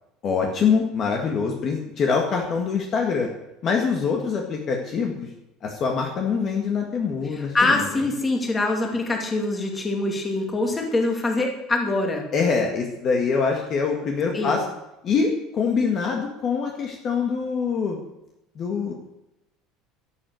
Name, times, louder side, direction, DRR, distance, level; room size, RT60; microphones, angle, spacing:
voice 1, 0.2-3.3 3.6-5.3 5.6-8.0 12.3-14.6 15.0-18.0 18.6-18.9, left 5 dB, 30° left, 1 dB, 2.0 m, -24 dB
voice 2, 7.2-12.3 14.3-14.6, left 2 dB, 15° left, 2 dB, 2.5 m, -24 dB
12.5 x 12.0 x 8.0 m, 0.89 s
cardioid pair, 180°, 0 cm